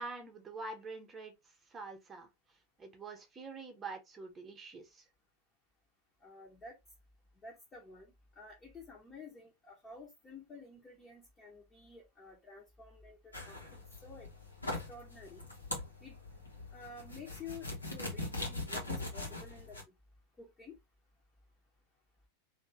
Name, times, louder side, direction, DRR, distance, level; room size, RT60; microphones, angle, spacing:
voice 1, 0.0-1.3 1.7-2.3 2.8-5.0, right 3 dB, 15° right, 1.2 m, -45 dB
voice 2, 6.2-6.8 7.4-14.3 14.9-15.5 16.0-16.2 16.7-19.9 20.4-20.8, left 4 dB, 20° left, 1.1 m, -51 dB
sound 1, 13.3-19.8, left 2 dB, 80° left, 1.3 m, -42 dB
3.1 x 2.7 x 3.1 m
figure-of-eight pair, 90°, 0 cm